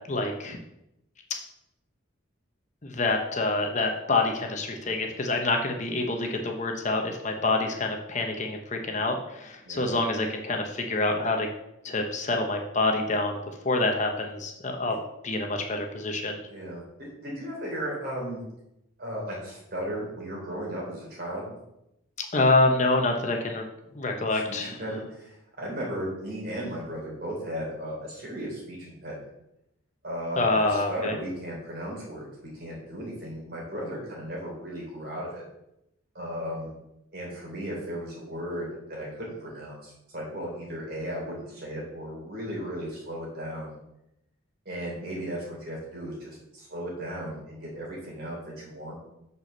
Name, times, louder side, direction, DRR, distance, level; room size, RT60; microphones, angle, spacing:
voice 1, 0.1-0.6 2.8-11.5 11.8-15.0 15.2-16.4 22.2-23.6 23.9-24.7 30.4-31.2, left 2 dB, 35° left, 3 dB, 0.9 m, -26 dB
voice 2, 9.6-9.9 14.9-15.0 16.4-18.4 19.0-21.5 24.3-29.1 30.0-32.3 32.5-35.4 36.1-36.7 37.1-43.7 44.6-49.0, equal, 50° right, -3 dB, 3.4 m, -35 dB
6.0 x 5.6 x 6.6 m, 0.85 s
head